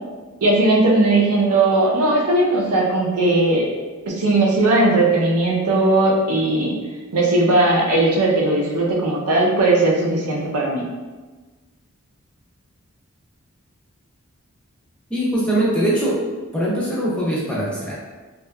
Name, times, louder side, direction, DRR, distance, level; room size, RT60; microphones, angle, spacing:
voice 1, 0.4-3.7 4.1-6.7 7.1-10.8, right 2 dB, 90° right, -2 dB, 0.6 m, -18 dB
voice 2, 15.1-16.2 16.5-18.0, right 1 dB, 5° left, -6 dB, 0.5 m, -21 dB
2.7 x 2.3 x 2.2 m, 1.3 s
head